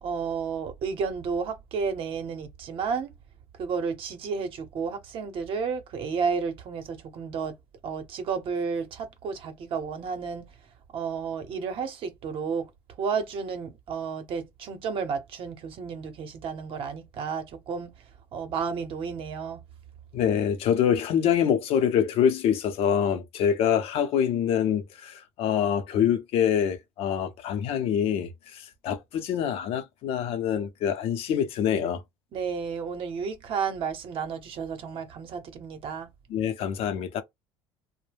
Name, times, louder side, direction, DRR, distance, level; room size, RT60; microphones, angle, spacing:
voice 1, 0.0-3.1 3.6-7.6 7.8-10.5 10.9-12.7 13.0-18.0 18.3-19.6 32.3-36.1, right 5 dB, 55° right, 0.8 m, -32 dB
voice 2, 20.1-32.0 36.3-37.2, left 8 dB, 60° left, 0.6 m, -25 dB
2.3 x 2.1 x 3.3 m
supercardioid pair, 90°, 11 cm